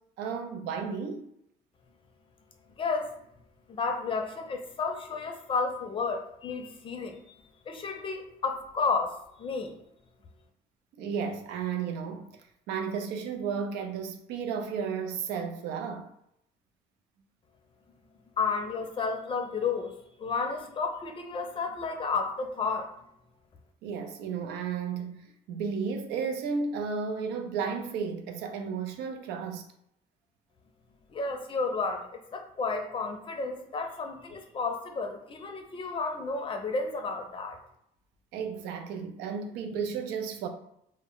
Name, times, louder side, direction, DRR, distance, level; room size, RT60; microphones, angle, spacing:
voice 1, 0.2-1.3 11.0-12.3 12.7-16.1 23.8-29.7 38.3-40.5, right 6 dB, 90° right, 0.4 m, -33 dB
voice 2, 2.7-3.1 3.7-7.4 7.7-9.7 18.4-19.9 20.2-22.9 31.1-37.6, left 4 dB, 30° left, 0.5 m, -32 dB
2.1 x 2.1 x 3.6 m
cardioid pair, 110°, 17 cm